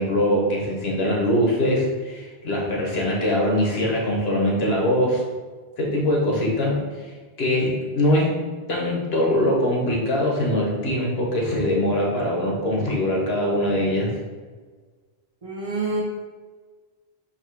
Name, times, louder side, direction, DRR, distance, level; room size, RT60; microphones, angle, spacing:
voice 1, 0.0-5.2 5.8-7.1 7.4-8.3 8.7-14.1, left 1 dB, 90° left, -2 dB, 1.3 m, -22 dB
voice 2, 15.4-16.0, right 3 dB, 35° right, -4 dB, 0.9 m, -27 dB
4.2 x 2.8 x 4.3 m, 1.4 s
omnidirectional pair, 1.0 m